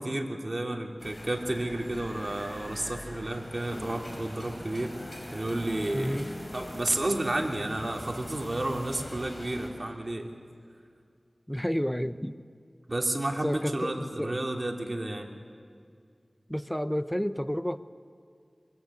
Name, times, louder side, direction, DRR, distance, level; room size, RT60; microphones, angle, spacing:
voice 1, 0.0-10.3 12.9-15.3, right 1 dB, 45° right, 1 dB, 3.1 m, -31 dB
sound 1, 1.0-9.7, left 1 dB, 40° left, 5.8 m, -42 dB
voice 2, 5.9-6.3 11.5-12.4 13.4-14.4 16.5-17.8, equal, 5° left, 12 dB, 0.9 m, -30 dB
25.0 x 22.0 x 8.6 m, 2.3 s
wide cardioid pair, 45°, 0 cm